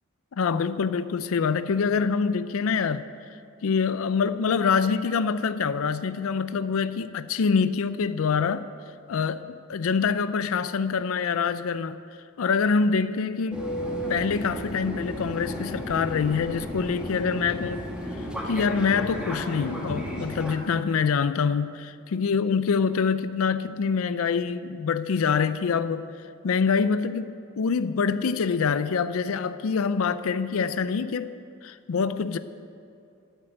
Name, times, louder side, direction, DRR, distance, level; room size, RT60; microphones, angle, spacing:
voice 1, 0.4-3.1 3.6-8.7 9.1-12.0 12.4-13.7 14.1-17.8 18.2-26.1 26.4-31.4 31.6-32.4, left 5 dB, 70° left, 0.4 m, -25 dB
Fixed-wing aircraft airplane, 13.5-20.6, equal, 5° right, 1.9 m, -33 dB
12.5 x 7.7 x 9.2 m
head